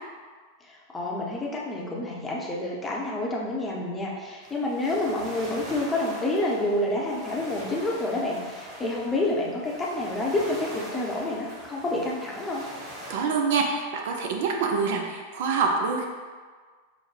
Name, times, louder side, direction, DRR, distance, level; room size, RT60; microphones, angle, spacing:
voice 1, 0.6-12.6, left 2 dB, 15° left, -3 dB, 0.7 m, -28 dB
sound 1, 4.4-13.1, equal, 25° right, 1.2 m, -42 dB
voice 2, 13.1-16.0, right 5 dB, 50° right, 2 dB, 0.4 m, -26 dB
4.6 x 2.1 x 3.2 m, 1.5 s
figure-of-eight pair, 90°, 0 cm